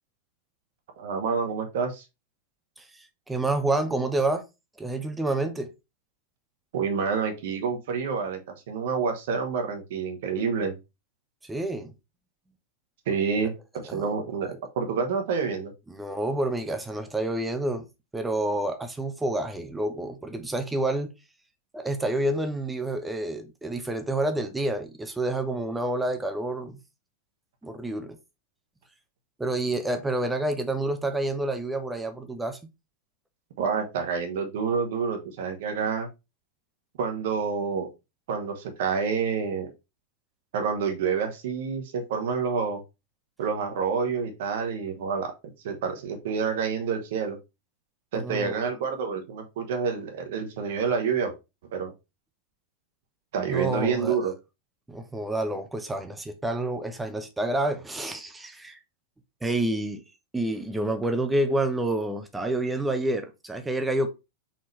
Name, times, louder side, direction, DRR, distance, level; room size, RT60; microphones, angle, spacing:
voice 1, 1.0-2.0 6.7-8.4 8.7-10.7 13.1-15.7 33.6-36.1 37.0-37.9 38.3-39.7 40.5-42.8 43.4-47.4 48.1-51.3 51.7-51.9 53.3-54.3, right 6 dB, 55° right, 1.0 m, -28 dB
voice 2, 2.8-4.4 4.8-5.7 11.4-11.9 13.4-13.5 13.9-14.1 15.9-17.8 18.1-21.1 21.7-26.8 27.6-28.2 29.4-32.6 48.2-48.6 53.5-54.2 54.9-58.8 59.4-60.0 60.3-64.1, right 2 dB, 10° right, 0.7 m, -28 dB
4.3 x 3.7 x 3.1 m
figure-of-eight pair, 90°, 0 cm